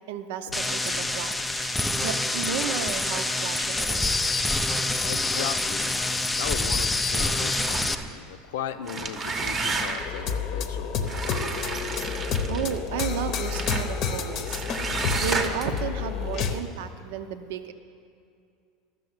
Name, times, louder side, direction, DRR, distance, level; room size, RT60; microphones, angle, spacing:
voice 1, 0.1-4.3 12.5-17.7, right 8 dB, 75° right, 9 dB, 0.6 m, -33 dB
sound 1, 0.5-7.9, left 2 dB, 5° left, 0.4 m, -26 dB
voice 2, 5.0-6.0 6.4-11.5, left 9 dB, 85° left, 10 dB, 0.7 m, -37 dB
sound 2, 7.5-8.1 8.7-10.2 11.0-12.8 13.5-13.9 14.5-15.8, right 3 dB, 20° right, 0.8 m, -31 dB
sound 3, 10.0-16.6, left 6 dB, 40° left, 0.7 m, -30 dB
13.0 x 6.9 x 8.0 m, 2.4 s
supercardioid pair, 160°, 0 cm